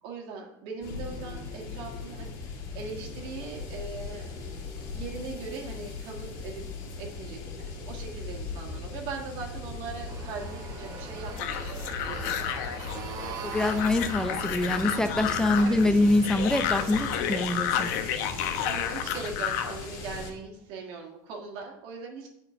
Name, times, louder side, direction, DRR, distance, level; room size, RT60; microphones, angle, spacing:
voice 1, 0.0-4.3 4.9-6.7 7.0-12.6 15.6-16.0 16.6-16.7 18.2-22.3, right 4 dB, 60° right, 1 dB, 1.6 m, -40 dB
sound 1, 0.8-20.3, left 3 dB, 55° left, 2.3 m, -39 dB
sound 2, 10.1-17.4, right 6 dB, 40° right, 1.0 m, -43 dB
sound 3, 11.4-19.8, left 9 dB, 75° left, 0.8 m, -31 dB
voice 2, 13.4-17.9, left 2 dB, 5° left, 9 dB, 0.5 m, -25 dB
7.4 x 4.4 x 5.4 m, 0.80 s
supercardioid pair, 135°, 9 cm